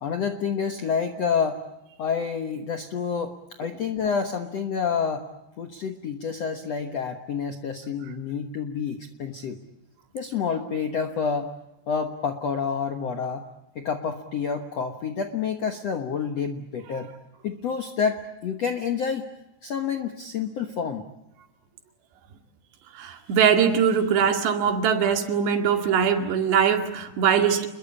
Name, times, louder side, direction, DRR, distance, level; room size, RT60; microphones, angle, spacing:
voice 1, 0.0-1.7 2.0-5.3 5.6-9.6 10.1-11.5 11.9-13.5 13.7-17.1 17.4-19.3 19.6-21.0, left 6 dB, 70° left, 6 dB, 1.5 m, -28 dB
voice 2, 23.0-27.7, right 7 dB, 75° right, 5 dB, 4.3 m, -22 dB
29.0 x 22.0 x 8.6 m, 0.91 s
omnidirectional pair, 4.9 m